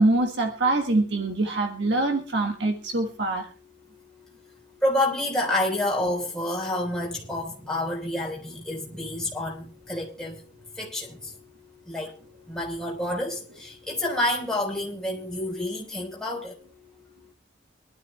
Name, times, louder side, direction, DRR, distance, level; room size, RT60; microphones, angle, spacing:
voice 1, 0.0-3.5, right 2 dB, 65° right, 1.6 m, -24 dB
voice 2, 4.8-10.4 10.7-11.3 11.9-12.1 12.5-16.6, left 1 dB, 5° left, 3.8 m, -28 dB
25.0 x 12.5 x 2.2 m
head